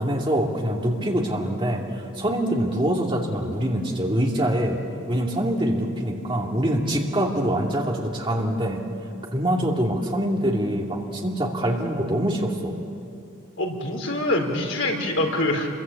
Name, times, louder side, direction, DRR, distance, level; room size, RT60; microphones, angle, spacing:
voice 1, 0.0-1.8 2.1-4.8 5.1-8.8 9.3-12.8, right 1 dB, 25° right, -1 dB, 2.6 m, -24 dB
voice 2, 13.6-15.7, left 1 dB, 65° left, 2 dB, 3.9 m, -25 dB
29.5 x 22.5 x 8.5 m, 2.5 s
head